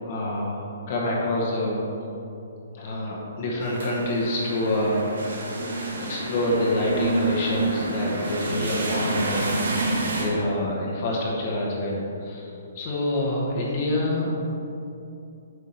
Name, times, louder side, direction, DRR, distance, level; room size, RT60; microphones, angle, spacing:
voice 1, 0.0-1.8 2.7-5.0 6.0-9.6 10.1-14.4, left 1 dB, 40° left, -3 dB, 1.2 m, -27 dB
sound 1, 3.6-10.3, right 2 dB, 85° right, 1.7 m, -28 dB
7.9 x 3.6 x 5.8 m, 2.7 s
hypercardioid pair, 165°, 0 cm